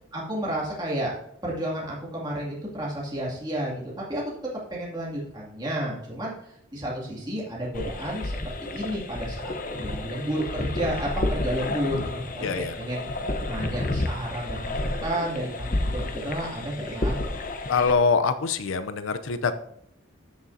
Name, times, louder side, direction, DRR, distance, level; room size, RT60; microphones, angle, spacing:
voice 1, 0.1-1.1 1.4-4.2 4.7-8.3 8.6-13.0 13.5-17.2, right 1 dB, 20° right, -5 dB, 2.4 m, -31 dB
sound 1, 7.7-17.9, left 2 dB, 40° left, 0.9 m, -31 dB
voice 2, 12.4-12.8 17.7-19.5, left 5 dB, 85° left, 11 dB, 0.6 m, -24 dB
14.5 x 6.5 x 2.7 m, 0.73 s
head